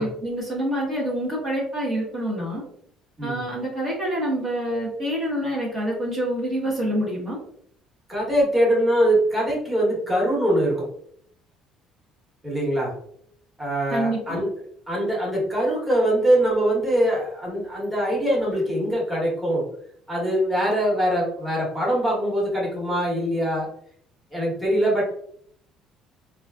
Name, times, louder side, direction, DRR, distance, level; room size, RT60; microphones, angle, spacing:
voice 1, 0.0-2.6 3.2-7.4 13.9-14.4, right 1 dB, 30° right, -6 dB, 1.0 m, -27 dB
voice 2, 8.1-10.9 12.4-12.9 13.6-14.5 14.9-19.6 20.1-23.7 24.3-25.0, right 1 dB, 10° right, -5 dB, 1.2 m, -22 dB
3.9 x 2.4 x 2.4 m, 0.67 s
cardioid pair, 140°, 0 cm